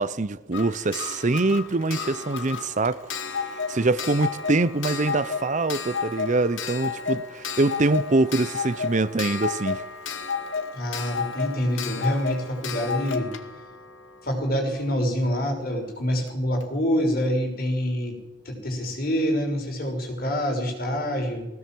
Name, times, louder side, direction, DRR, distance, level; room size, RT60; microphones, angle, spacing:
voice 1, 0.0-3.4 3.7-9.8, right 2 dB, 40° right, 0.7 m, -24 dB
Clock, 0.5-15.1 16.3-16.4 16.6-16.7, left 5 dB, 80° left, 2.0 m, -32 dB
voice 2, 10.7-13.3 14.2-18.2 18.4-21.5, equal, 50° left, 6.2 m, -26 dB
20.5 x 17.5 x 7.8 m
head